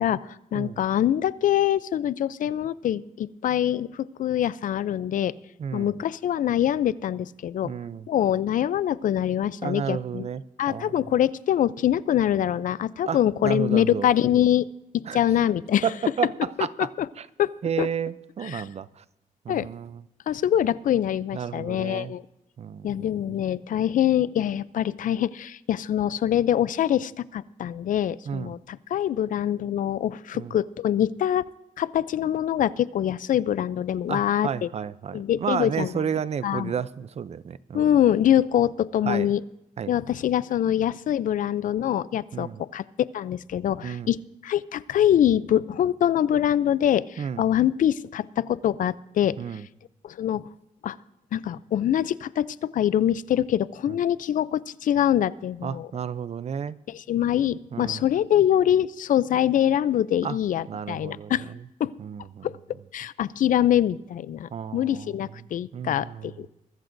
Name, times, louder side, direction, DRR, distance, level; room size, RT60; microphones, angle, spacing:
voice 1, 0.0-5.3 5.7-7.8 8.1-10.3 10.6-14.7 14.9-15.8 16.8-16.9 17.4-17.5 17.8-17.9 18.4-18.6 19.5-19.7 20.3-22.2 22.8-31.4 31.8-34.7 35.1-35.9 36.4-36.7 37.7-39.4 39.9-42.8 43.1-49.4 50.0-50.5 50.8-51.0 51.3-55.9 56.9-61.5 61.8-61.9 62.4-62.5 62.9-66.5, left 10 dB, 65° left, 0.4 m, -24 dB
voice 2, 5.6-6.0 7.6-8.1 9.6-11.0 13.1-14.1 15.1-15.2 15.8-16.9 17.2-17.3 17.6-19.0 19.4-20.0 21.3-22.2 22.6-23.1 28.3-28.6 30.3-30.6 34.1-37.9 39.0-39.3 39.8-39.9 42.3-42.6 43.8-44.1 47.2-47.4 49.4-49.7 53.9-54.0 55.6-56.8 57.7-58.1 60.2-60.4 60.7-61.4 62.0-62.5 64.5-65.5 65.7-66.5, right 7 dB, 45° right, 0.5 m, -32 dB
22.5 x 14.0 x 2.6 m
cardioid pair, 90°, 14 cm